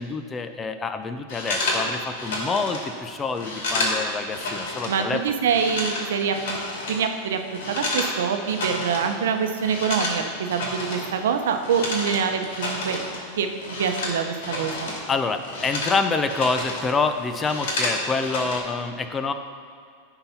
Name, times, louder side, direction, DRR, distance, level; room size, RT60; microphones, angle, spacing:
voice 1, 0.0-5.2 15.1-19.3, left 4 dB, 20° left, 8 dB, 0.4 m, -27 dB
sound 1, 1.3-5.0 5.3-8.2 8.4-9.2 9.4-15.1 15.3-16.9 17.2-18.6, left 2 dB, 75° left, 2.2 m, -30 dB
voice 2, 4.9-6.6 6.9-7.4 7.7-13.0 13.4-14.9, right 6 dB, 85° right, 6 dB, 0.8 m, -25 dB
10.0 x 4.0 x 5.6 m, 2.2 s
supercardioid pair, 140°, 0 cm